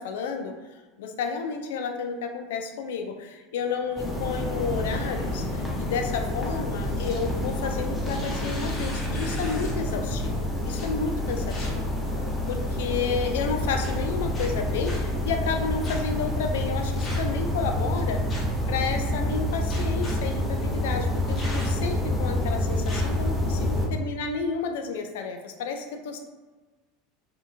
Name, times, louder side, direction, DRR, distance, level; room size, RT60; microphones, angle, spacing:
voice 1, 0.0-11.9 12.5-18.2 18.7-26.2, left 5 dB, 70° left, 5 dB, 0.4 m, -31 dB
sound 1, 3.6-7.0 7.4-7.8, equal, 70° right, 1.0 m, -42 dB
sound 2, 4.0-23.9, left 1 dB, ahead, 0.7 m, -28 dB
sound 3, 6.8-7.3 7.8-9.9 10.8-10.9 11.5-11.7 12.4-12.8 13.8-13.9 14.3-15.0 15.8-16.0 17.0-17.4 18.3-18.6 19.7-20.2 21.4-21.9 22.8-23.0, left 2 dB, 30° left, 0.8 m, -39 dB
2.7 x 2.6 x 2.5 m, 1.2 s
hypercardioid pair, 80°, 0 cm